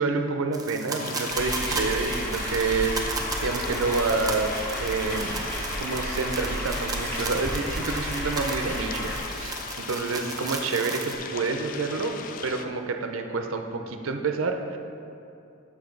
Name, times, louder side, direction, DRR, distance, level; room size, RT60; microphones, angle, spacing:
voice 1, 0.0-5.5 5.8-12.2 12.4-14.8, right 4 dB, 75° right, 5 dB, 0.6 m, -28 dB
sound 1, 0.5-11.1, right 3 dB, 20° right, 0.6 m, -35 dB
sound 2, 1.0-12.6, left 6 dB, 45° left, 0.4 m, -39 dB
sound 3, 1.3-9.2, equal, 10° left, 1.8 m, -32 dB
6.5 x 5.9 x 5.1 m, 2.7 s
head